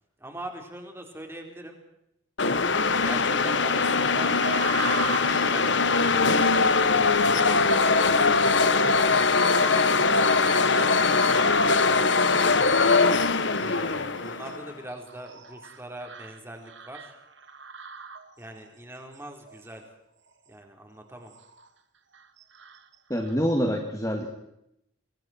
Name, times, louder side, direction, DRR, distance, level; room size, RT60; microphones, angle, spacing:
voice 1, 0.2-1.8 3.0-4.4 4.8-9.4 10.1-12.0 12.4-12.8 13.5-17.2 18.4-19.8 20.5-21.3, right 1 dB, 10° right, 3 dB, 4.4 m, -42 dB
sound 1, 2.4-14.7, left 4 dB, 60° left, 1.4 m, -22 dB
sound 2, 4.3-18.7 19.1-19.8 20.3-20.5 21.0-21.7 22.1-23.4, right 4 dB, 60° right, 2.2 m, -40 dB
voice 2, 23.1-24.3, equal, 15° left, 2 dB, 2.4 m, -26 dB
28.0 x 23.5 x 4.6 m, 0.80 s
head